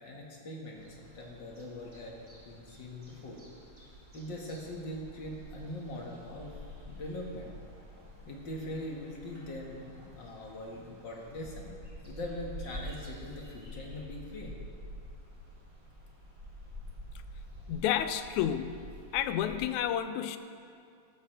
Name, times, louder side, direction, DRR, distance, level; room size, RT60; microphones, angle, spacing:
voice 1, 0.0-2.1 2.5-3.4 4.1-6.6 6.9-7.5 8.3-14.5, left 1 dB, 45° left, -2 dB, 2.0 m, -42 dB
sound 1, 0.7-19.8, equal, 10° right, 2.3 m, -48 dB
voice 2, 17.7-18.8 19.1-20.4, left 10 dB, 85° left, 10 dB, 2.0 m, -30 dB
14.0 x 14.0 x 3.4 m, 2.4 s
omnidirectional pair, 3.4 m